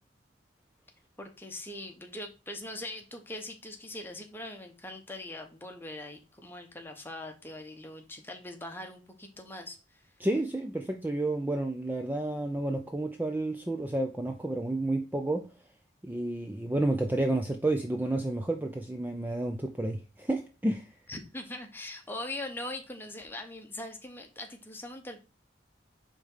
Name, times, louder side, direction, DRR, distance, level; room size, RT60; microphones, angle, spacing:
voice 1, 1.2-10.0 21.1-25.2, left 1 dB, 10° left, 1.0 m, -41 dB
voice 2, 10.2-15.5 16.0-20.9, right 2 dB, 10° right, 0.4 m, -30 dB
5.2 x 3.6 x 5.4 m
head